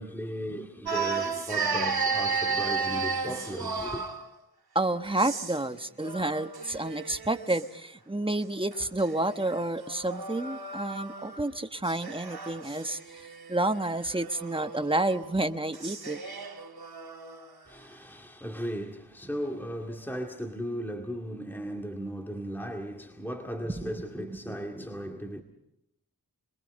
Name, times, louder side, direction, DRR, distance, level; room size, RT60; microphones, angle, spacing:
voice 1, 0.0-4.0 17.7-25.4, equal, 5° left, 2.1 m, -36 dB
sound 1, 0.8-4.3 5.1-5.7 6.0-7.7 8.7-11.5 11.8-17.5, right 5 dB, 85° right, 2.9 m, -34 dB
voice 2, 4.7-13.0 13.5-16.2 23.7-23.8, right 2 dB, 15° right, 1.2 m, -29 dB
26.5 x 22.0 x 5.4 m
wide cardioid pair, 55°, 37 cm